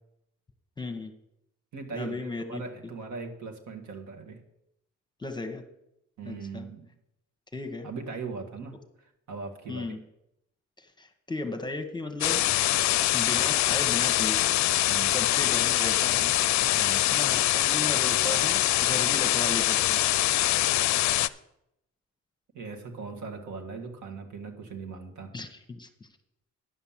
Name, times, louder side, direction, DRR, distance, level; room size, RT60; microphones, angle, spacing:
voice 1, 0.8-1.1 1.9-2.6 5.2-5.6 6.2-6.6 7.5-7.9 9.7-10.0 10.8-12.4 13.1-14.5 15.0-16.4 17.1-20.0 25.3-25.9, left 2 dB, 15° left, 6 dB, 1.1 m, -36 dB
voice 2, 1.7-4.4 6.2-6.9 7.8-9.9 14.9-15.2 16.7-17.1 22.5-25.3, right 4 dB, 70° right, 3 dB, 2.0 m, -39 dB
sound 1, 12.2-21.3, left 15 dB, 65° left, 0.4 m, -24 dB
10.5 x 5.7 x 7.4 m, 0.83 s
cardioid pair, 90°, 30 cm